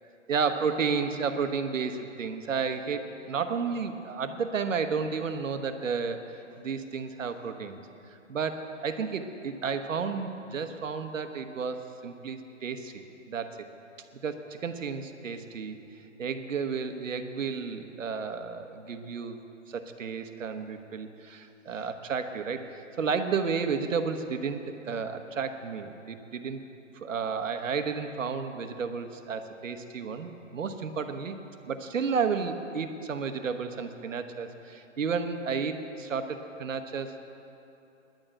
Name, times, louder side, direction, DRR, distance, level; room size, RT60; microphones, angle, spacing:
voice 1, 0.3-6.2 6.6-7.8 8.3-13.0 13.3-13.6 14.2-15.8 16.2-19.4 19.7-26.6 26.9-31.4 31.7-37.2, right 5 dB, 75° right, 8 dB, 1.1 m, -32 dB
10.5 x 9.1 x 8.9 m, 2.8 s
hypercardioid pair, 170°, 39 cm